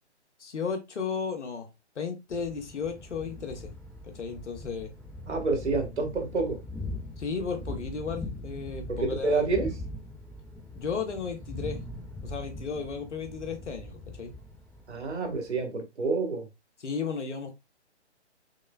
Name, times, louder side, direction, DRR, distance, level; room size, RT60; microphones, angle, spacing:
voice 1, 0.4-1.7 1.9-3.7 4.0-4.9 7.2-9.5 10.7-11.8 12.2-14.3 16.8-17.6, left 5 dB, 80° left, 1.1 m, -34 dB
Thunder, 2.3-15.6, left 1 dB, ahead, 0.9 m, -41 dB
voice 2, 5.3-6.6 8.9-9.7 14.9-16.5, right 3 dB, 75° right, 1.7 m, -28 dB
6.2 x 2.1 x 2.3 m
hypercardioid pair, 145°, 35 cm